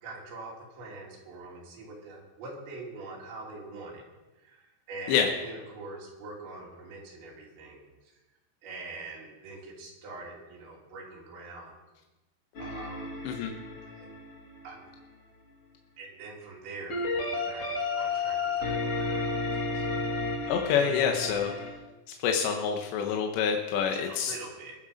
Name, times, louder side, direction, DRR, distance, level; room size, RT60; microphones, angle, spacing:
voice 1, 0.0-4.0 4.4-7.8 8.6-11.7 12.6-13.2 14.0-14.1 14.6-14.9 16.0-19.8 23.9-24.8, right 3 dB, 85° right, -4 dB, 5.0 m, -44 dB
sound 1, 12.5-15.0 16.9-21.7, left 3 dB, 40° left, 2.6 m, -32 dB
voice 2, 20.5-21.5 22.2-24.3, left 7 dB, 85° left, 3 dB, 3.3 m, -27 dB
22.5 x 7.6 x 5.1 m, 1.1 s
omnidirectional pair, 5.0 m